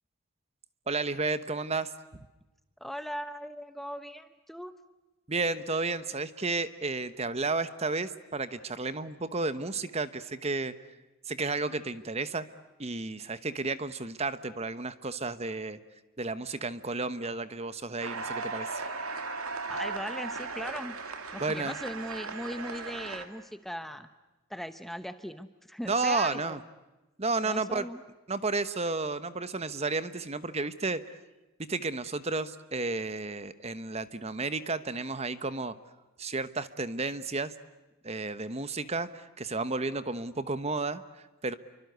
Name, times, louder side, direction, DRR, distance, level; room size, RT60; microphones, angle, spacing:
voice 1, 0.9-1.9 5.3-10.7 11.3-12.5 12.8-15.8 16.2-18.9 21.4-21.8 25.9-26.6 27.2-27.9 28.3-31.2 31.7-35.7 36.2-37.5 38.0-41.5, right 3 dB, 30° right, 13 dB, 1.1 m, -32 dB
voice 2, 2.8-4.7 19.7-21.0 21.3-24.1 24.5-26.6 27.4-28.0, equal, ahead, 10 dB, 0.9 m, -39 dB
sound 1, 18.0-23.3, right 4 dB, 85° right, 2.7 m, -37 dB
29.0 x 24.5 x 8.1 m, 1.1 s
head